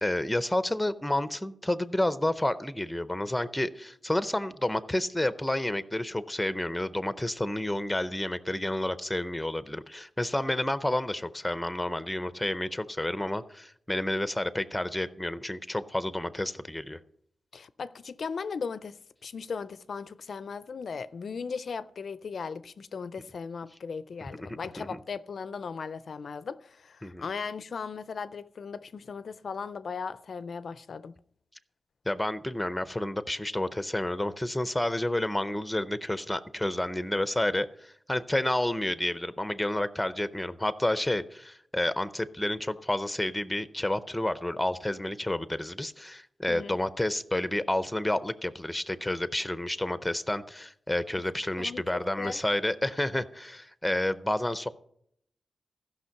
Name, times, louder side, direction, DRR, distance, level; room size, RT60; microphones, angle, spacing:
voice 1, 0.0-17.0 24.4-24.9 27.0-27.2 32.1-54.7, left 1 dB, 10° left, 0.5 m, -30 dB
voice 2, 17.5-31.2 46.5-46.8 51.6-52.4, left 5 dB, 60° left, 0.4 m, -37 dB
15.0 x 5.9 x 5.7 m
wide cardioid pair, 120°, 0 cm